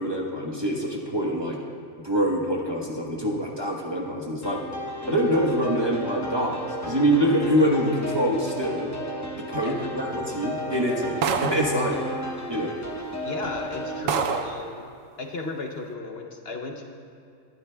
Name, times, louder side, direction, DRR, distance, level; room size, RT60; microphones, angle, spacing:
voice 1, 0.0-1.6 2.0-4.6 5.0-9.0 9.3-12.0 12.5-12.7, equal, 20° right, -2 dB, 1.0 m, -25 dB
sound 1, 4.4-14.0, equal, 20° left, 0.6 m, -34 dB
voice 2, 9.6-9.9 13.2-14.9 15.2-16.8, left 3 dB, 55° left, 3 dB, 0.9 m, -34 dB
sound 2, 11.2-11.8 12.8-12.9 13.5-13.6 14.1-14.6, right 6 dB, 80° right, 1.0 m, -26 dB
21.0 x 10.5 x 2.2 m, 2.5 s
omnidirectional pair, 1.3 m